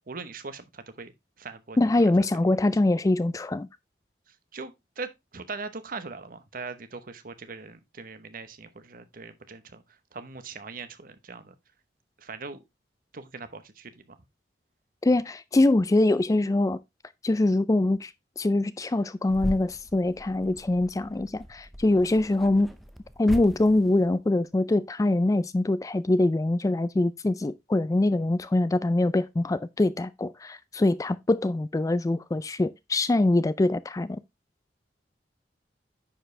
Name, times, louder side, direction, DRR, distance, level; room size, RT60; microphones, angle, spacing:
voice 1, 0.1-1.1 1.4-2.1 4.5-9.8 10.1-11.5 12.2-12.6 13.1-14.2, right 4 dB, 50° right, 0.9 m, -40 dB
voice 2, 1.8-3.7 15.0-16.8 17.2-18.1 18.4-22.7 23.2-34.2, left 2 dB, 20° left, 0.3 m, -24 dB
sound 1, 19.3-24.2, equal, ahead, 0.7 m, -39 dB
10.0 x 4.8 x 3.2 m
head